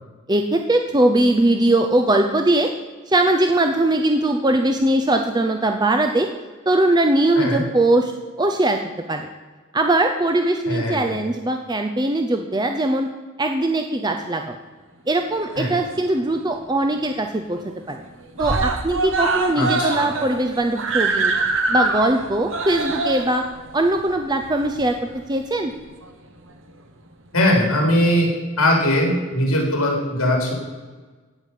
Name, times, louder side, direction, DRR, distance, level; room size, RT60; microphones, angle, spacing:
voice 1, 0.3-2.7 3.1-6.3 6.7-8.1 8.4-8.8 9.1-9.3 9.7-13.1 13.4-14.6 15.1-17.6 17.9-18.0 18.4-21.3 21.7-23.4 23.7-25.0 25.3-25.7, right 1 dB, 20° right, 5 dB, 0.6 m, -20 dB
voice 2, 10.7-11.1 15.6-15.7 19.5-20.1 27.3-28.3 28.6-30.5, left 1 dB, 75° left, 0 dB, 4.2 m, -20 dB
Screaming, 15.5-16.4 16.7-16.8 17.2-17.3 17.6-18.0 18.4-25.2 26.0-26.1, right 3 dB, 55° right, 1.2 m, -24 dB
16.0 x 5.6 x 8.2 m, 1.3 s
head